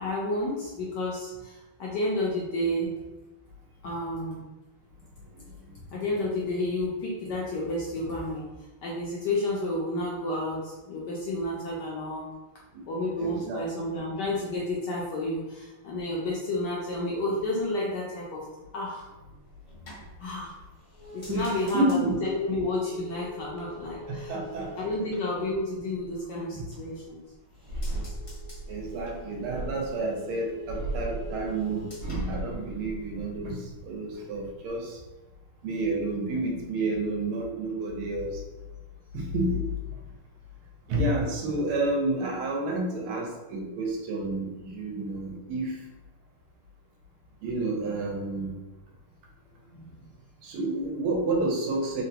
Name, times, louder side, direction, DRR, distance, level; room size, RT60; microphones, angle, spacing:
voice 1, 0.0-2.9 3.8-4.4 5.9-12.3 12.9-18.5 18.7-19.1 20.2-20.5 21.1-24.3 24.7-27.2 49.7-50.0, left 1 dB, 75° left, -4 dB, 1.0 m, -31 dB
voice 2, 13.2-13.6 21.3-22.2 24.1-24.7 26.5-26.6 28.7-33.6 33.8-35.0 35.6-38.4 39.1-39.7 40.9-45.8 47.4-48.6 50.4-52.0, right 2 dB, 85° right, 0 dB, 1.6 m, -30 dB
sound 1, 19.3-26.1 26.5-27.2 27.5-33.2 33.5-34.0, left 2 dB, 40° left, 0.7 m, -45 dB
sound 2, 27.6-30.0 30.6-33.7 34.1-34.7, right 2 dB, 45° right, 1.0 m, -36 dB
3.8 x 2.1 x 2.7 m, 1.1 s
omnidirectional pair, 2.3 m